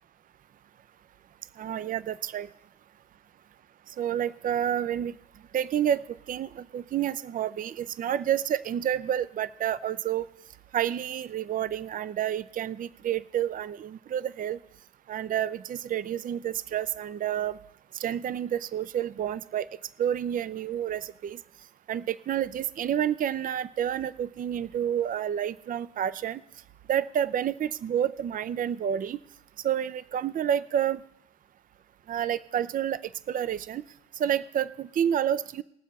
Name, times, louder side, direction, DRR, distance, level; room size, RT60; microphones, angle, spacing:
voice 1, 1.6-2.5 4.0-5.2 5.5-10.3 10.7-14.6 15.1-17.6 18.0-19.7 20.0-21.4 21.9-26.4 26.9-29.2 29.6-31.0 32.1-33.0 33.3-33.8 34.2-35.6, right 10 dB, 45° right, 16 dB, 0.5 m, -29 dB
20.0 x 7.3 x 4.1 m, 0.75 s
cardioid pair, 90°, 20 cm